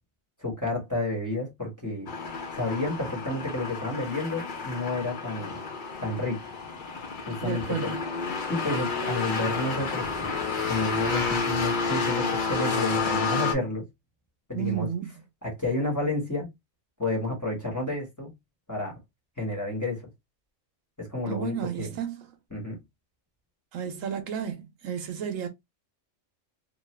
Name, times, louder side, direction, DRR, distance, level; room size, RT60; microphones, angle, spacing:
voice 1, 0.4-2.1 2.5-5.6 6.0-6.5 7.3-8.0 8.5-10.3 10.7-13.8 14.5-14.9 15.4-16.5 17.0-18.3 18.7-19.0 19.4-20.1 21.0-21.9 22.5-22.8, left 2 dB, 15° left, 1.1 m, -30 dB
sound 1, 2.1-13.5, left 4 dB, 50° left, 0.7 m, -30 dB
voice 2, 7.4-8.0 14.5-15.1 21.3-22.3 23.7-25.5, right 9 dB, 75° right, 1.0 m, -32 dB
2.7 x 2.3 x 3.1 m
omnidirectional pair, 1.4 m